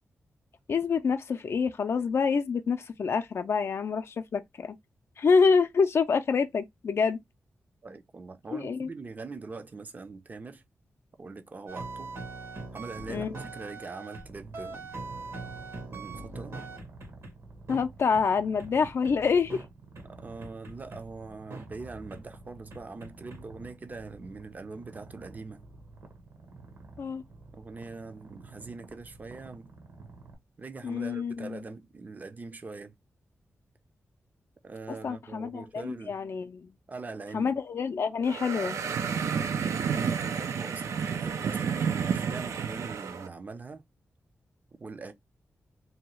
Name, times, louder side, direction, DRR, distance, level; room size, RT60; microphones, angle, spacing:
voice 1, 0.7-4.8 5.2-7.2 8.5-8.9 13.1-13.3 17.7-19.6 27.0-27.2 30.8-31.6 35.0-36.7 37.3-38.8, left 5 dB, 60° left, 0.4 m, -27 dB
voice 2, 7.8-10.6 11.2-12.1 12.7-15.0 15.9-16.6 20.0-25.6 27.5-29.7 30.6-33.0 34.6-36.2 36.9-37.5 39.9-43.8 44.8-45.1, right 3 dB, 35° right, 0.5 m, -42 dB
sound 1, 11.7-14.2 14.5-17.3 17.7-17.8 18.1-18.2 18.6-19.1 19.5-19.6 20.0-20.1 20.4-21.0 21.5-21.6 22.1-22.2 22.7-23.4, right 3 dB, 70° right, 1.3 m, -41 dB
Purr, 14.2-30.4, right 3 dB, 55° right, 0.9 m, -50 dB
sound 2, 38.2-43.3, right 6 dB, 90° right, 0.4 m, -30 dB
2.8 x 2.3 x 3.0 m
wide cardioid pair, 95°, 5 cm